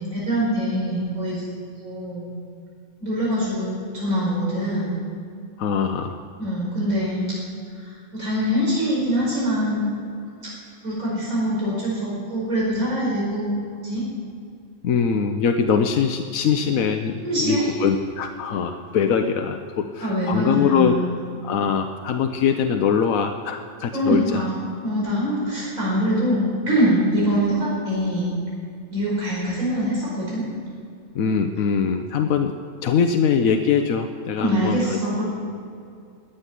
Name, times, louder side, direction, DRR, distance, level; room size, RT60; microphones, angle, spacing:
voice 1, 0.0-1.4 1.8-2.3 3.0-5.0 6.4-7.2 7.8-9.9 10.8-13.6 13.8-14.1 17.2-17.7 20.0-21.1 23.9-28.3 28.9-30.4 34.4-35.2, equal, 85° right, -7 dB, 5.6 m, -24 dB
voice 2, 5.6-6.2 14.8-21.0 21.4-24.5 31.1-32.5 32.8-35.0, left 6 dB, 85° left, 6 dB, 1.2 m, -22 dB
18.5 x 7.9 x 9.8 m, 2.4 s
omnidirectional pair, 1.4 m